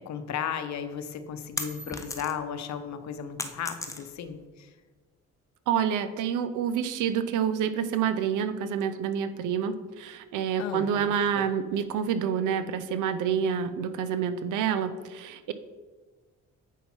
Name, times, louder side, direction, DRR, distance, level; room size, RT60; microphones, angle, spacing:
voice 1, 0.0-4.7 10.6-11.1 11.3-11.5, left 7 dB, 65° left, 9 dB, 0.8 m, -35 dB
sound 1, 1.0-2.6 2.9-4.4, left 2 dB, 10° left, 0.8 m, -36 dB
voice 2, 5.7-15.5, right 8 dB, 85° right, 11 dB, 0.6 m, -28 dB
8.1 x 5.6 x 4.4 m, 1.4 s
cardioid pair, 90°, 30 cm